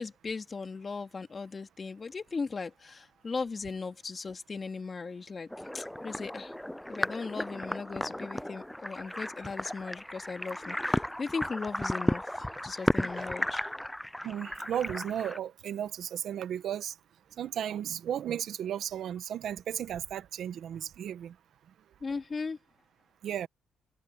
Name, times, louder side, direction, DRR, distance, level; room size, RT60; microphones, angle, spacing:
voice 1, 0.0-6.5 6.9-13.7 22.0-22.6, left 4 dB, 35° left, 2.7 m, -38 dB
sound 1, 5.5-15.4, left 1 dB, 5° left, 0.4 m, -34 dB
voice 2, 14.2-16.9 17.4-21.3 23.2-23.5, right 10 dB, 70° right, 1.3 m, -34 dB
cardioid pair, 90°, 0 cm